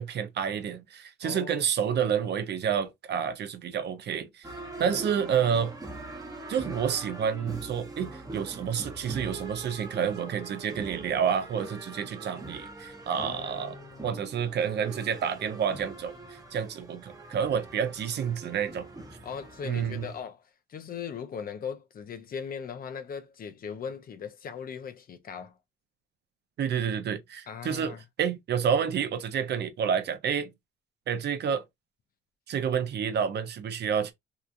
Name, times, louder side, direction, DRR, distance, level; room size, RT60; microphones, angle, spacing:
voice 1, 0.0-4.5 4.8-5.7 6.5-13.8 14.0-18.9 19.6-20.1 26.6-30.5 31.1-31.6 32.5-34.1, right 7 dB, 60° right, 0.6 m, -29 dB
voice 2, 1.2-1.7 4.6-5.0 13.2-14.2 19.2-20.4 20.7-25.5 27.5-28.0, left 7 dB, 45° left, 0.5 m, -39 dB
sound 1, 4.4-20.2, right 2 dB, 20° right, 0.8 m, -43 dB
2.8 x 2.3 x 2.3 m
cardioid pair, 90°, 20 cm